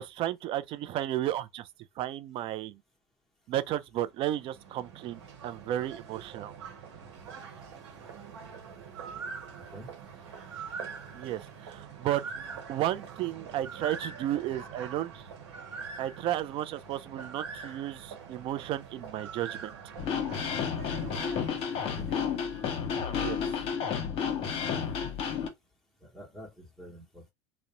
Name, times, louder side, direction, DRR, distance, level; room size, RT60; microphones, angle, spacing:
voice 1, 0.0-1.7 2.0-2.8 3.5-6.5 11.1-12.2 12.7-15.2 16.0-19.7 23.2-23.4, right 13 dB, 40° right, 0.3 m, -33 dB
sound 1, 4.1-22.5, right 6 dB, 85° right, 1.0 m, -44 dB
voice 2, 9.6-9.9 21.9-22.1 24.7-24.9 26.0-27.3, equal, ahead, 0.8 m, -48 dB
sound 2, 20.0-25.5, left 7 dB, 45° left, 0.8 m, -31 dB
2.4 x 2.0 x 2.9 m
supercardioid pair, 120°, 14 cm